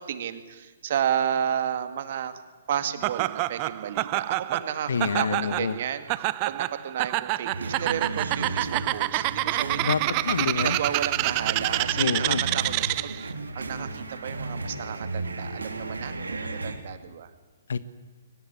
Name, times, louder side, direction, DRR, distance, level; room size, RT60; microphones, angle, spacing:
voice 1, 0.0-2.4 2.7-10.1 10.6-17.3, right 9 dB, 45° right, 10 dB, 2.2 m, -32 dB
Laughter, 3.0-13.3, right 20 dB, 30° right, 0.7 m, -28 dB
voice 2, 4.9-5.8 9.8-10.8 12.0-12.4 17.7-17.8, left 5 dB, 60° left, 14 dB, 1.5 m, -27 dB
sound 1, 7.5-16.8, right 3 dB, 70° right, 3.2 m, -34 dB
23.5 x 19.5 x 9.7 m, 1.3 s
figure-of-eight pair, 125°, 0 cm